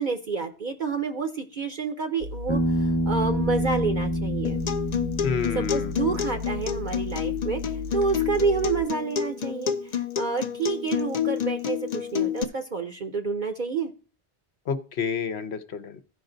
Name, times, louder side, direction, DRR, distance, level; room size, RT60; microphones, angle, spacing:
voice 1, 0.0-4.6 5.5-13.9, right 4 dB, 50° right, 6 dB, 0.8 m, -29 dB
sound 1, 2.2-8.9, left 2 dB, 80° right, 1.2 m, -36 dB
Bass guitar, 2.5-6.8, equal, 10° left, 0.8 m, -28 dB
Acoustic guitar, 4.4-12.4, left 9 dB, 50° left, 0.5 m, -29 dB
voice 2, 5.2-6.2 14.7-16.0, left 6 dB, 70° left, 10 dB, 1.0 m, -30 dB
15.0 x 5.2 x 3.8 m, 0.38 s
omnidirectional pair, 1.2 m